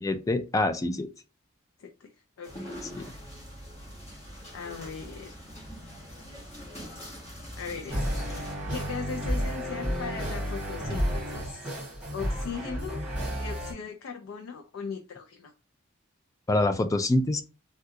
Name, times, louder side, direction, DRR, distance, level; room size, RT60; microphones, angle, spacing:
voice 1, 0.0-1.1 2.9-3.1 16.5-17.4, left 2 dB, 15° left, 0.3 m, -25 dB
voice 2, 1.8-2.1 2.4-2.9 4.5-5.3 7.6-8.3 8.7-11.7 12.1-13.0 13.4-15.5, left 5 dB, 80° left, 0.4 m, -38 dB
sound 1, 2.4-8.5, equal, 35° left, 1.1 m, -43 dB
sound 2, 7.9-13.7, equal, 5° right, 1.6 m, -31 dB
3.5 x 2.3 x 2.7 m
head